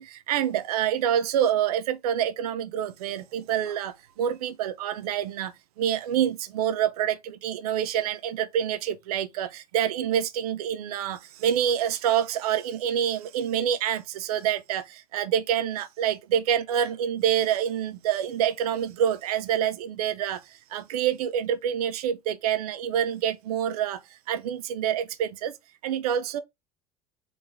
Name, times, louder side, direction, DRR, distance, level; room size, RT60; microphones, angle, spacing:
voice 1, 0.0-5.5 5.8-20.4 20.7-24.0 24.3-25.5 25.8-26.4, right 9 dB, 75° right, 0.6 m, -27 dB
3.9 x 3.0 x 3.4 m
hypercardioid pair, 70°, 19 cm